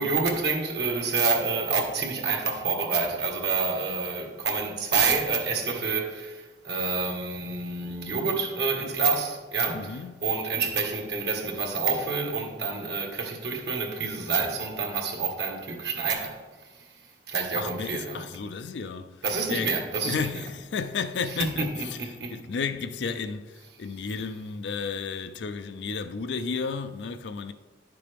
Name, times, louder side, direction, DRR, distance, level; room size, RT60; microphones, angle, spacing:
voice 1, 0.0-16.4 16.7-16.8 17.3-18.2 19.2-20.3 21.6-22.3, right 4 dB, 65° right, 1.5 m, -28 dB
voice 2, 9.7-10.3 17.5-27.5, left 5 dB, 80° left, 0.4 m, -33 dB
10.5 x 6.9 x 3.4 m
head